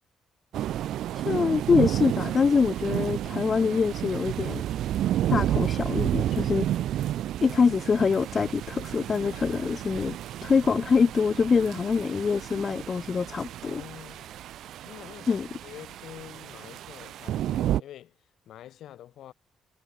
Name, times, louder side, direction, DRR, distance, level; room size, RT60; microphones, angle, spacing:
sound 1, 0.5-17.8, right 12 dB, 80° right, 1.4 m, -31 dB
voice 1, 1.2-4.6 5.3-6.7 7.4-10.2 10.4-13.8 15.3-15.5, left 5 dB, 40° left, 0.8 m, -24 dB
voice 2, 13.6-14.3 14.8-18.2 18.5-19.3, left 12 dB, 75° left, 5.6 m, -46 dB
cardioid pair, 90°, 0 cm